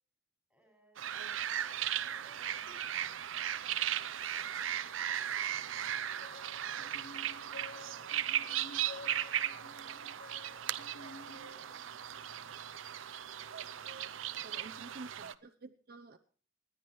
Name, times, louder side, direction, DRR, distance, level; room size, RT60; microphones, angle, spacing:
voice 1, 0.5-1.3 1.7-9.5, right 1 dB, ahead, 2 dB, 6.2 m, -68 dB
sound 1, 1.0-15.3, right 10 dB, 90° right, 0.6 m, -37 dB
voice 2, 1.1-1.5 14.4-16.2, right 3 dB, 50° right, 7 dB, 0.8 m, -50 dB
sound 2, 6.2-12.0, left 3 dB, 80° left, 0.9 m, -52 dB
27.0 x 10.5 x 3.2 m, 0.43 s
head